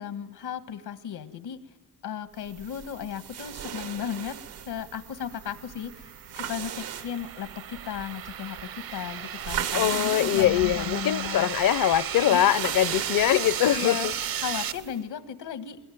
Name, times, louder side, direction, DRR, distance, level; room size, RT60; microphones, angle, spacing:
voice 1, 0.0-1.6 2.0-4.4 4.6-11.5 12.2-12.4 13.7-14.1 14.4-15.8, left 8 dB, 80° left, 1.7 m, -35 dB
sound 1, 2.4-15.0, right 9 dB, 85° right, 1.3 m, -38 dB
sound 2, 5.8-14.7, right 9 dB, 65° right, 0.9 m, -34 dB
voice 2, 9.7-14.1, left 12 dB, 60° left, 0.8 m, -23 dB
22.0 x 20.0 x 9.4 m
cardioid pair, 80°, 38 cm